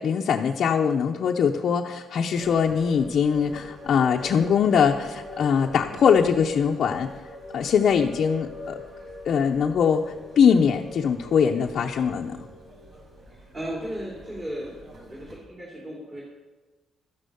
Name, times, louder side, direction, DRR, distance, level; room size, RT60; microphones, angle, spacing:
voice 1, 0.0-7.1 7.5-8.8 9.2-12.4, left 7 dB, 55° left, 0 dB, 0.8 m, -22 dB
sound 1, 2.4-15.4, left 1 dB, 50° right, 5.3 m, -43 dB
voice 2, 13.3-16.2, equal, 25° right, -4 dB, 3.1 m, -36 dB
13.0 x 10.0 x 7.0 m, 1.2 s
cardioid pair, 170°, 0 cm